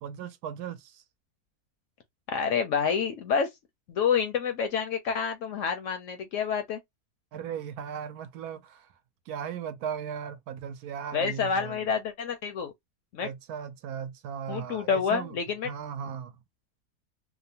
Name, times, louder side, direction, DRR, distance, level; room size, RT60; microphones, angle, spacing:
voice 1, 0.0-1.0 7.3-8.9 9.3-11.9 13.2-15.4 15.6-16.4, right 8 dB, 80° right, 1.1 m, -37 dB
voice 2, 2.3-3.5 3.9-6.8 11.1-12.7 13.1-13.3 14.5-15.7, left 6 dB, 65° left, 0.8 m, -28 dB
2.8 x 2.1 x 2.7 m
omnidirectional pair, 1.6 m